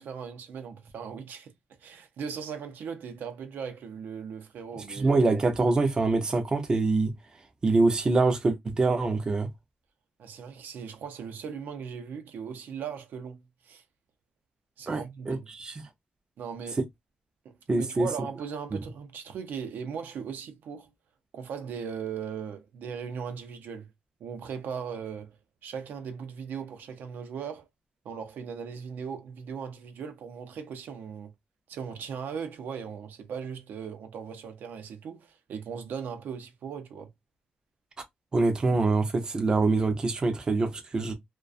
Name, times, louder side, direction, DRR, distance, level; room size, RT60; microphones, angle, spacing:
voice 1, 0.0-1.5 1.8-5.2 10.2-13.8 14.8-15.5 16.4-16.8 17.4-20.9 21.3-23.9 24.2-25.4 25.6-27.7 28.0-31.3 31.7-37.1, right 6 dB, 80° right, 0.5 m, -38 dB
voice 2, 4.9-7.1 7.6-9.5 14.9-15.7 17.7-18.1 18.7-18.8 38.3-41.1, right 3 dB, 25° right, 0.4 m, -25 dB
2.3 x 2.2 x 2.4 m
wide cardioid pair, 170°, 3 cm